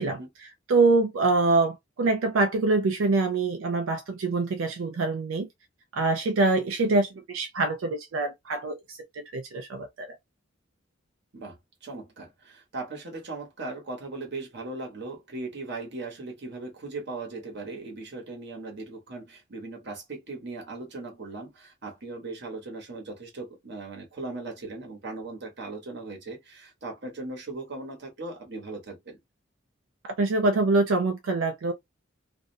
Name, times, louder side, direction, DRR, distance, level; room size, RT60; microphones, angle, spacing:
voice 1, 0.0-5.5 5.9-10.2 30.0-31.7, right 3 dB, 90° right, 0.4 m, -25 dB
voice 2, 11.3-29.2, right 3 dB, 60° right, 1.0 m, -38 dB
2.5 x 2.1 x 2.5 m
head